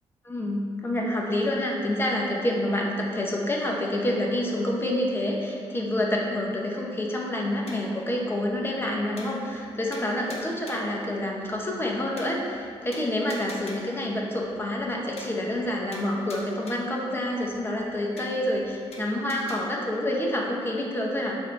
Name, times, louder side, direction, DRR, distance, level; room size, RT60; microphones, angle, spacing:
voice 1, 0.2-21.4, left 1 dB, 20° left, -1 dB, 1.3 m, -28 dB
sound 1, 7.7-8.0 8.4-8.5 8.8-8.9 9.2-9.7 9.9-11.0 11.4-11.5 11.8-11.9 12.2-12.6 12.9-14.0 14.4-14.5 14.8-14.9 15.2-15.7 15.9-17.0 17.4-17.5 17.8-17.9 18.2-18.6 18.9-19.6, left 2 dB, 70° left, 1.2 m, -44 dB
7.7 x 4.2 x 5.5 m, 2.5 s
cardioid pair, 120°, 11 cm